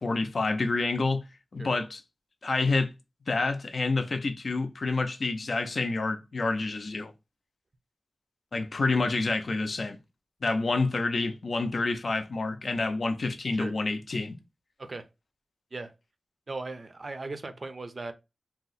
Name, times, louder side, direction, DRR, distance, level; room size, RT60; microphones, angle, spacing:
voice 1, 0.0-1.2 1.5-2.0 2.4-2.9 3.3-7.1 8.5-10.0 10.4-14.4, left 3 dB, 65° left, 0.4 m, -28 dB
voice 2, 16.5-18.1, right 3 dB, 50° right, 0.4 m, -38 dB
2.7 x 2.0 x 3.9 m
wide cardioid pair, 105°, 0 cm